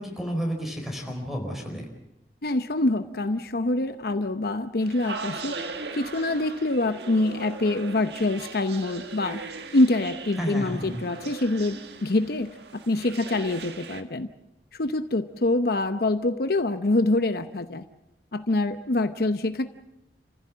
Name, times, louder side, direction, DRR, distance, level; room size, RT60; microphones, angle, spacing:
voice 1, 0.0-1.8 10.4-11.0, equal, ahead, 3 dB, 4.7 m, -31 dB
voice 2, 2.4-5.6 5.9-9.4 9.7-14.3 14.7-17.9 18.3-19.7, left 2 dB, 60° left, 9 dB, 0.9 m, -25 dB
sound 1, 4.8-14.0, right 4 dB, 70° right, 1.6 m, -39 dB
29.0 x 15.5 x 7.4 m, 0.89 s
head